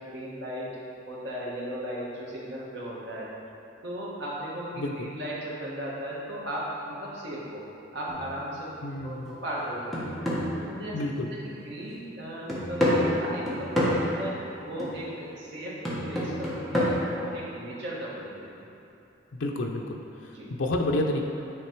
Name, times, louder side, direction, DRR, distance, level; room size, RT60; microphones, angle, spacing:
voice 1, 0.0-0.7 1.1-3.3 3.8-7.6 7.9-8.8 9.0-10.2 10.6-11.0 11.3-15.8 16.0-18.7 20.3-20.5, right 1 dB, 60° right, -6 dB, 1.4 m, -36 dB
voice 2, 4.8-5.1 8.8-9.3 10.9-11.3 19.3-21.2, left 1 dB, 80° left, 1 dB, 0.5 m, -30 dB
sound 1, 8.1-8.4 8.9-9.1 9.5-11.5 11.9-12.0 12.5-14.2 14.8-15.0 15.8-16.9, left 1 dB, ahead, 1.1 m, -28 dB
9.8 x 3.3 x 4.5 m, 2.8 s
head